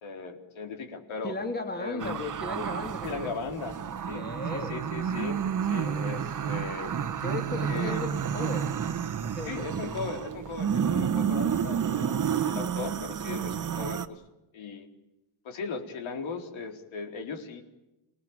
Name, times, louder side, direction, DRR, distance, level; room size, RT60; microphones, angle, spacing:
voice 1, 0.0-1.3 1.8-2.2 3.0-3.7 4.1-4.2 4.5-5.4 5.7-7.0 7.7-8.0 9.4-14.2 14.5-14.9 15.4-17.6, left 4 dB, 65° left, 4 dB, 4.2 m, -37 dB
voice 2, 1.2-3.1 4.1-4.7 5.9-6.2 7.2-8.6 9.2-9.7 11.1-11.3, left 2 dB, 20° left, 4 dB, 3.1 m, -36 dB
sound 1, 2.0-14.1, right 8 dB, 40° right, 1.4 m, -30 dB
27.0 x 19.5 x 8.9 m, 0.98 s
cardioid pair, 125°, 50 cm